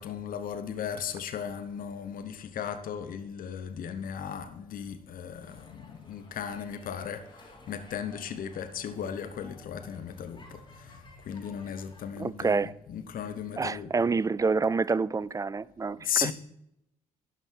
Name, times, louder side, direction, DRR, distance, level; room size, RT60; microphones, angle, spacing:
voice 1, 0.0-14.0 16.0-16.3, left 8 dB, 60° left, 1.0 m, -36 dB
sound 1, 5.3-12.0, left 1 dB, 30° left, 3.4 m, -56 dB
sound 2, 8.5-13.4, left 2 dB, 90° left, 2.7 m, -57 dB
voice 2, 12.2-12.7 13.6-16.3, right 4 dB, 20° right, 0.4 m, -27 dB
12.0 x 5.5 x 4.6 m
hypercardioid pair, 55°, 16 cm